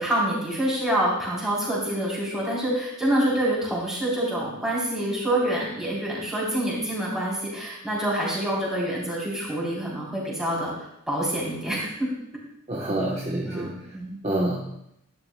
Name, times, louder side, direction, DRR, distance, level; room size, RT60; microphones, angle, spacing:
voice 1, 0.0-10.7 11.1-12.1 13.5-14.2, right 1 dB, 5° right, -6 dB, 3.4 m, -26 dB
voice 2, 12.7-13.7 14.2-14.8, right 1 dB, 30° right, -3 dB, 1.0 m, -27 dB
11.5 x 11.0 x 2.2 m, 0.79 s
head